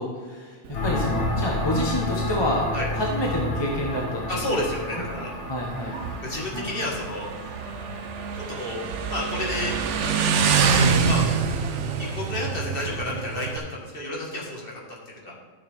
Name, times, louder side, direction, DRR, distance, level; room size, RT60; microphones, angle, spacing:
voice 1, 0.0-2.6 2.9-4.2 4.6-4.7 5.5-6.0 6.5-6.7, left 1 dB, 20° left, -1 dB, 1.1 m, -28 dB
Motorcycle, 0.6-13.6, right 5 dB, 65° right, 1.0 m, -27 dB
sound 1, 0.7-10.3, left 2 dB, 60° left, 1.6 m, -32 dB
voice 2, 4.3-5.3 6.2-7.3 8.6-8.8 9.1-9.8 10.7-11.3 12.0-14.7 15.1-15.4, left 1 dB, 45° left, -4 dB, 2.0 m, -30 dB
12.0 x 6.5 x 3.5 m, 1.5 s
omnidirectional pair, 1.3 m